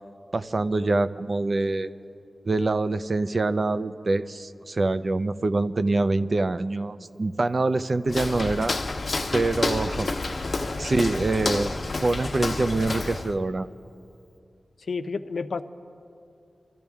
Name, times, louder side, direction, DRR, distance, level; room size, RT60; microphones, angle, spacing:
voice 1, 0.3-1.9 2.5-8.7 9.3-10.1 10.8-11.7 12.0-13.7, right 2 dB, 45° right, 12 dB, 0.5 m, -25 dB
Walk footsteps, 8.1-13.4, left 3 dB, 50° left, 1.0 m, -29 dB
voice 2, 14.8-15.6, left 4 dB, 80° left, 10 dB, 0.5 m, -30 dB
26.5 x 13.5 x 3.6 m, 2.6 s
wide cardioid pair, 90°, 0 cm